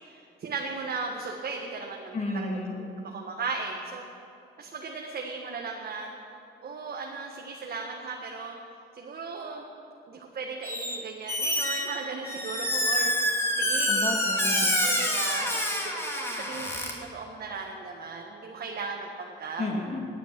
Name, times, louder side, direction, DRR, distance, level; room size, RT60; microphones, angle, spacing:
voice 1, 0.0-4.0 4.6-6.3 6.6-8.5 8.9-9.6 10.1-14.1 14.8-19.6, right 4 dB, 50° right, 0 dB, 1.4 m, -37 dB
voice 2, 2.1-2.8 13.9-14.8 19.6-20.1, left 2 dB, 35° left, 1 dB, 1.9 m, -32 dB
Squeak, 10.6-11.0 11.3-16.9, left 1 dB, 10° left, 2.4 m, -27 dB
18.0 x 9.2 x 6.1 m, 2.7 s
cardioid pair, 90°, 20 cm